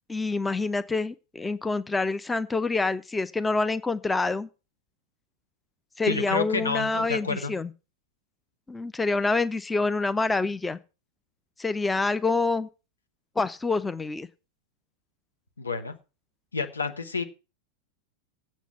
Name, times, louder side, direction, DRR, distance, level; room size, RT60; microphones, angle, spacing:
voice 1, 0.1-4.5 6.0-7.7 8.7-10.8 11.6-12.7 13.4-14.3, left 3 dB, 10° left, 0.5 m, -27 dB
voice 2, 6.1-7.5 15.6-15.9 16.5-17.2, left 4 dB, 75° left, 1.2 m, -29 dB
8.3 x 6.3 x 8.2 m
figure-of-eight pair, 90°, 0 cm